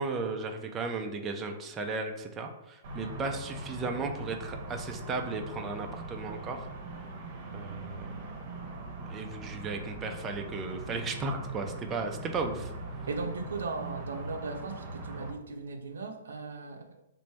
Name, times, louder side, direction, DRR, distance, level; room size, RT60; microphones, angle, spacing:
voice 1, 0.0-6.7 7.5-8.1 9.1-12.7, right 3 dB, 20° right, 3 dB, 0.4 m, -35 dB
sound 1, 2.8-15.3, right 2 dB, 45° right, 0.9 m, -41 dB
voice 2, 13.1-17.0, right 4 dB, 85° right, 5 dB, 0.6 m, -37 dB
3.1 x 2.5 x 4.3 m, 0.94 s
hypercardioid pair, 135°, 0 cm